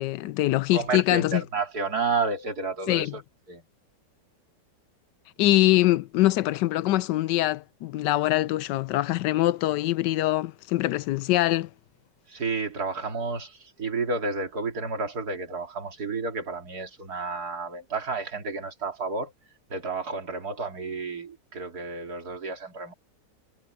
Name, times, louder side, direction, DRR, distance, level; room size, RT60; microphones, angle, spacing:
voice 1, 0.0-1.4 2.9-3.1 5.4-11.7, left 16 dB, 80° left, 1.2 m, -23 dB
voice 2, 0.7-3.2 3.5-3.6 12.3-19.3 19.7-22.9, right 3 dB, 60° right, 3.0 m, -31 dB
omnidirectional pair, 1.9 m